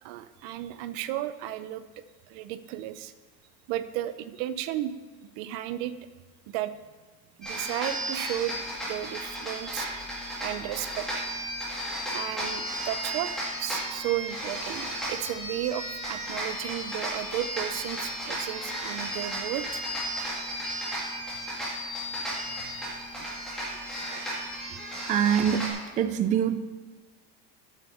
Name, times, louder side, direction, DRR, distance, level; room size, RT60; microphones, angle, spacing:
voice 1, 0.0-1.8 2.3-3.1 3.7-4.9 5.2-5.9 6.5-6.7 7.4-11.3 12.1-13.3 13.6-19.8 22.3-22.4 23.1-23.3, right 13 dB, 85° right, 13 dB, 0.6 m, -34 dB
Pipe and Drum, 7.4-25.7, equal, ahead, 2.3 m, -34 dB
voice 2, 25.1-25.7 26.0-26.6, right 9 dB, 25° right, 10 dB, 0.3 m, -24 dB
8.2 x 6.4 x 5.5 m, 1.3 s
cardioid pair, 165°, 32 cm